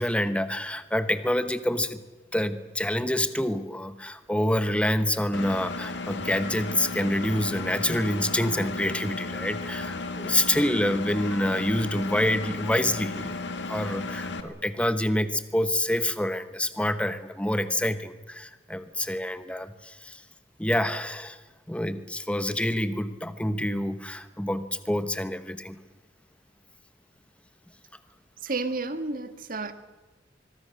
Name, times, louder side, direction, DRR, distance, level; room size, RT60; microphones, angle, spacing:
voice 1, 0.0-2.0 2.3-13.4 13.7-20.2 20.6-21.4 21.7-25.8, left 1 dB, 5° left, 11 dB, 1.2 m, -27 dB
Engine, 5.3-14.4, left 3 dB, 70° left, 2.0 m, -34 dB
voice 2, 28.4-29.7, right 3 dB, 50° right, 9 dB, 1.8 m, -31 dB
25.0 x 22.0 x 6.6 m, 1.2 s
head